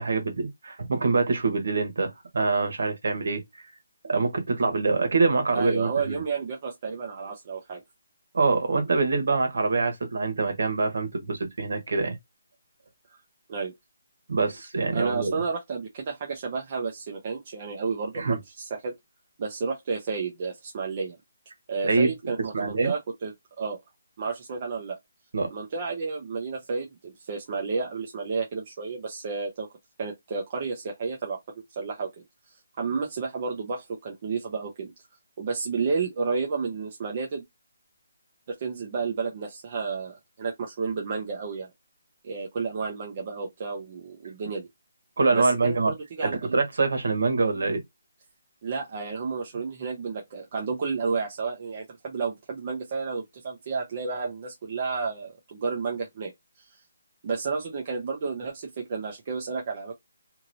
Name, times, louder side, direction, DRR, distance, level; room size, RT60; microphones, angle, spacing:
voice 1, 0.0-3.6 4.0-6.2 8.3-12.2 14.3-15.3 18.1-18.4 21.8-22.1 22.5-22.9 25.3-25.5 45.2-45.9 46.2-47.8, right 3 dB, 55° right, 1.2 m, -25 dB
voice 2, 5.5-7.8 13.5-13.7 14.9-18.9 19.4-21.2 21.7-23.3 23.6-23.8 24.2-25.0 25.5-29.7 30.0-31.4 31.7-32.1 32.8-34.9 35.4-37.4 38.5-41.7 42.2-44.7 45.3-46.6 48.6-56.3 56.6-56.8 57.2-59.9, right 4 dB, 25° right, 0.5 m, -31 dB
2.9 x 2.7 x 2.6 m
hypercardioid pair, 180°, 0 cm